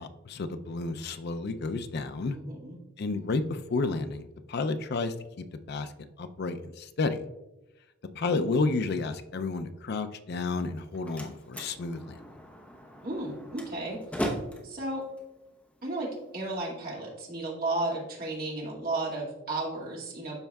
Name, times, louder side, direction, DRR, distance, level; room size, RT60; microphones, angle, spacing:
voice 1, 0.0-2.4 3.0-5.1 5.7-5.9 6.2-7.2 8.2-12.3, left 3 dB, 55° left, 9 dB, 0.5 m, -31 dB
voice 2, 2.3-2.8 13.0-14.0 14.6-15.0 15.8-20.4, right 2 dB, 50° right, -4 dB, 2.2 m, -33 dB
Slam, 10.6-16.6, equal, 5° left, 0.9 m, -39 dB
12.5 x 4.4 x 2.3 m, 1.0 s
head